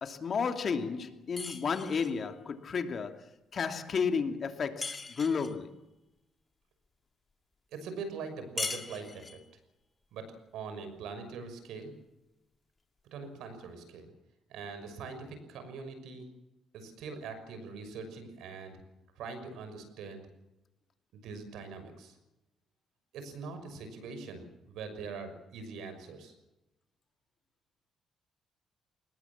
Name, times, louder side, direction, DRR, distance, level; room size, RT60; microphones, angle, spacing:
voice 1, 0.0-3.2 3.5-5.7, left 5 dB, 50° left, 2.8 m, -32 dB
sound 1, 1.4-2.2 4.8-5.6 8.6-9.5, left 3 dB, 25° left, 2.4 m, -39 dB
voice 2, 7.7-9.4 10.1-10.3 10.5-11.9 13.1-14.1 14.5-16.3 16.7-18.8 19.2-20.2 21.1-22.2 23.1-26.3, right 4 dB, 85° right, 6.1 m, -42 dB
24.0 x 20.0 x 7.4 m
cardioid pair, 90°, 0 cm